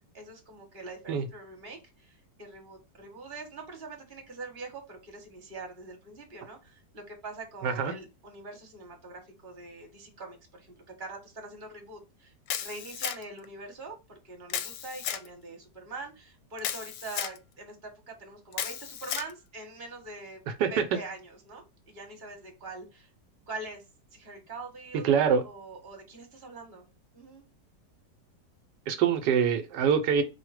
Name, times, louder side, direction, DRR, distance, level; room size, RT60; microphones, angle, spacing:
voice 1, 0.1-20.4 20.7-23.1 23.5-23.8 24.1-25.1 25.4-26.9 27.1-27.4, right 3 dB, 30° right, 3 dB, 1.3 m, -43 dB
voice 2, 7.6-7.9 20.6-20.8 25.0-25.4 28.9-30.2, right 7 dB, 80° right, 7 dB, 1.2 m, -24 dB
Camera, 12.5-13.4 14.5-15.3 16.6-17.4 18.5-19.3, left 10 dB, 70° left, 0.9 m, -34 dB
4.8 x 2.1 x 4.6 m, 0.26 s
omnidirectional pair, 1.9 m